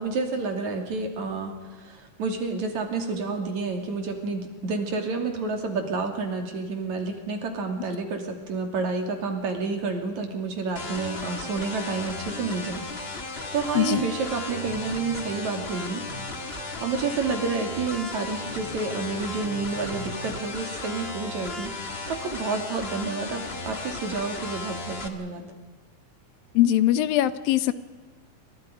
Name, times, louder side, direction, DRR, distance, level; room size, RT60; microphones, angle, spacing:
voice 1, 0.0-12.8 13.1-16.0 16.4-21.7 22.1-25.5, right 4 dB, 55° right, 4 dB, 3.8 m, -30 dB
sound 1, 10.7-25.1, left 3 dB, 35° left, 0.9 m, -35 dB
voice 2, 13.7-14.1 26.5-27.7, left 13 dB, 90° left, 13 dB, 2.7 m, -21 dB
sound 2, 14.6-20.4, right 1 dB, 35° right, 1.0 m, -45 dB
29.0 x 24.5 x 5.1 m, 1.4 s
omnidirectional pair, 4.0 m